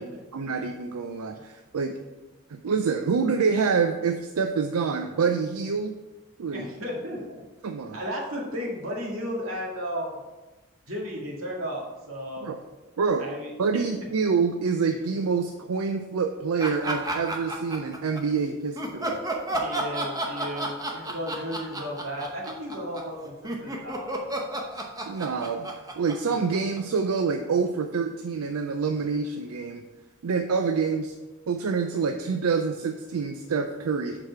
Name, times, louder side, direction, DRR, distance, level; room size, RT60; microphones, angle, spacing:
voice 1, 0.3-1.9 2.5-5.9 6.4-6.7 7.6-8.0 12.4-12.6 13.0-13.3 13.6-19.2 25.1-29.8 30.2-31.1 31.5-34.2, right 5 dB, 85° right, 6 dB, 0.5 m, -26 dB
voice 2, 6.5-7.4 7.9-10.2 10.9-12.5 13.2-13.8 19.5-24.3, equal, 65° right, -2 dB, 2.0 m, -34 dB
sound 1, 16.6-18.2 18.8-27.0, right 1 dB, 15° right, 0.8 m, -31 dB
6.5 x 4.8 x 5.8 m, 1.1 s
head